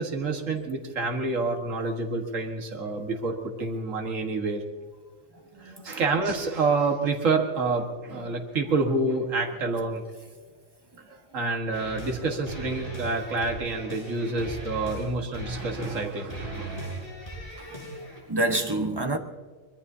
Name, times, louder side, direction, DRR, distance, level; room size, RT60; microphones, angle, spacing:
voice 1, 0.0-4.6 5.6-10.0 11.1-16.9, right 3 dB, 70° right, 2.0 m, -28 dB
voice 2, 5.5-6.0 17.6-17.9 18.3-19.2, right 2 dB, 20° right, 1.0 m, -28 dB
sound 1, 11.7-12.2 12.5-15.1 15.3-16.0 16.3-18.2, right 1 dB, 30° left, 6.1 m, -38 dB
24.5 x 21.0 x 2.8 m
omnidirectional pair, 1.4 m